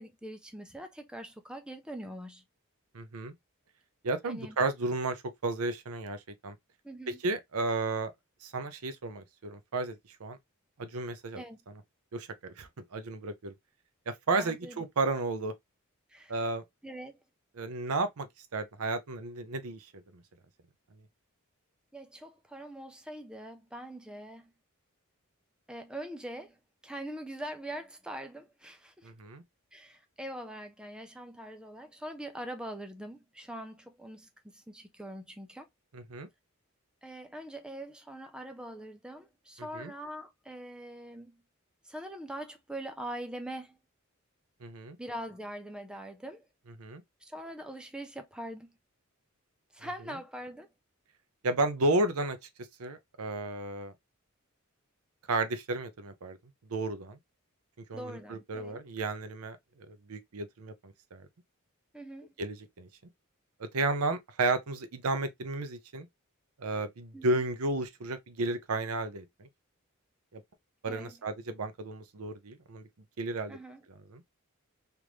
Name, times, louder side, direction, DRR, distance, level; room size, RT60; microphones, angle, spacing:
voice 1, 0.0-2.4 4.3-4.6 6.8-7.2 11.4-11.6 14.3-14.8 16.1-16.3 16.8-17.2 21.9-24.5 25.7-26.6 26.8-29.1 29.7-35.7 37.0-41.4 41.8-43.8 45.0-46.4 47.2-48.7 49.7-50.7 57.9-58.8 61.9-62.3 67.1-67.4 70.9-71.2 73.5-73.8, right 1 dB, 5° right, 0.5 m, -43 dB
voice 2, 2.9-3.3 4.0-6.5 7.1-8.1 8.4-10.4 10.8-11.4 12.1-13.5 14.1-15.5 16.3-16.6 17.6-20.2 29.0-29.4 35.9-36.3 39.7-39.9 44.6-45.0 46.8-47.0 51.4-52.4 52.8-53.9 55.3-56.4 56.7-57.2 57.9-59.6 59.9-61.3 62.4-62.9 63.6-66.1 66.6-69.5 70.3-70.4 70.8-72.8 73.2-73.6 74.1-74.2, right 2 dB, 85° right, 0.6 m, -33 dB
3.4 x 2.5 x 3.0 m
head